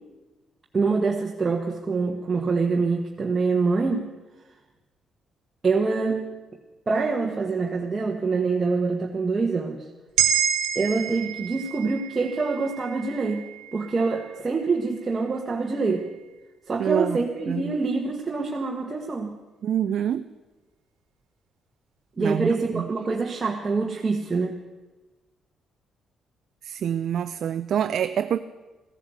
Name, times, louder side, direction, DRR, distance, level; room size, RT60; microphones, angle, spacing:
voice 1, 0.7-4.1 5.6-6.3 6.9-9.8 10.7-16.1 16.7-19.3 22.2-24.5, right 4 dB, 30° right, 0 dB, 1.5 m, -25 dB
sound 1, 10.2-14.7 15.1-15.2, right 9 dB, 85° right, 1.4 m, -29 dB
voice 2, 16.8-17.2 17.5-17.8 19.6-20.3 22.2-22.9 26.6-28.4, right 9 dB, 65° right, 10 dB, 0.5 m, -26 dB
15.5 x 10.5 x 8.1 m, 1.2 s
cardioid pair, 90°, 0 cm